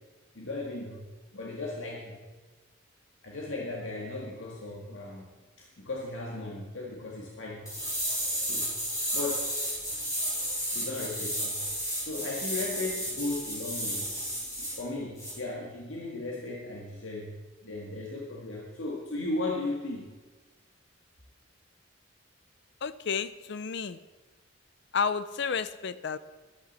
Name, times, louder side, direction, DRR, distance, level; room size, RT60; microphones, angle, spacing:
voice 1, 0.3-1.1 1.3-2.2 3.2-5.3 5.6-7.7 8.4-8.7 9.1-9.5 10.7-11.7 12.0-20.1, left 2 dB, 85° left, -2 dB, 1.8 m, -36 dB
sound 1, 7.7-14.8 15.2-15.3, equal, 15° left, 4.0 m, -32 dB
voice 2, 22.8-24.0 24.9-26.2, left 6 dB, 60° left, 15 dB, 0.5 m, -31 dB
14.0 x 12.5 x 4.2 m, 1.3 s
head